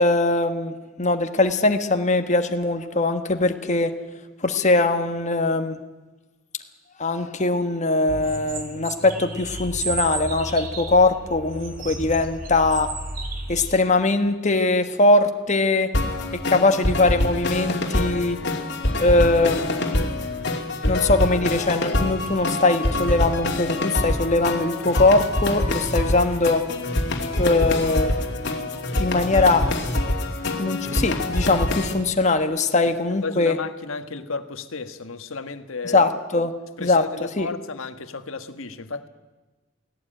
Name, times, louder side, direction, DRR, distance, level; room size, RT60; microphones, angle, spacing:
voice 1, 0.0-3.9 4.4-5.8 7.0-12.9 13.5-15.9 16.5-18.4 19.0-19.8 20.9-26.6 27.4-28.1 29.0-29.6 30.6-33.5 35.9-36.5 36.8-37.0 37.4-37.5, left 2 dB, 35° left, 7 dB, 1.4 m, -21 dB
sound 1, 8.1-13.8, right 2 dB, 45° right, 2.7 m, -33 dB
sound 2, 15.9-31.9, left 1 dB, 60° left, 2.6 m, -25 dB
voice 2, 32.8-36.0 36.8-39.1, left 4 dB, 80° left, 9 dB, 1.5 m, -33 dB
18.0 x 17.0 x 9.0 m, 1.2 s
head